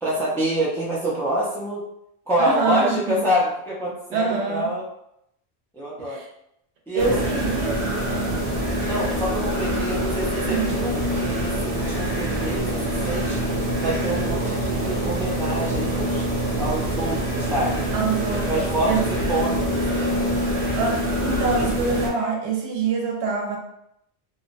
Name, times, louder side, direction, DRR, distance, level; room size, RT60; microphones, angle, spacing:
voice 1, 0.0-1.8 2.3-4.9 5.7-6.2 6.9-7.2 8.8-13.4 13.8-16.3 16.6-17.7 18.5-20.2, right 1 dB, 5° left, -6 dB, 0.4 m, -27 dB
voice 2, 2.4-3.3 4.1-4.7 6.0-6.3 6.9-8.4 10.5-10.7 17.9-19.1 20.7-23.6, right 4 dB, 90° right, 0 dB, 0.9 m, -25 dB
sound 1, 7.0-22.1, right 1 dB, 45° right, 0.8 m, -25 dB
2.8 x 2.0 x 2.5 m, 0.78 s
omnidirectional pair, 1.1 m